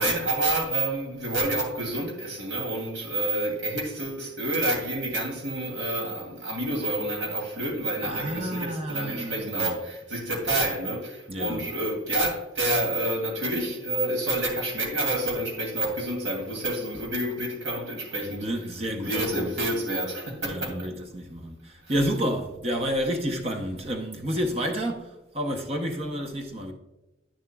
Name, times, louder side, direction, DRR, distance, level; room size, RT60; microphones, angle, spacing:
voice 1, 0.0-18.5 19.0-20.9 21.8-21.9, right 2 dB, 80° right, 2.7 m, -28 dB
voice 2, 8.0-9.8 11.3-11.7 18.2-19.6 20.4-26.7, equal, 30° right, 0.7 m, -30 dB
9.7 x 7.2 x 2.3 m
head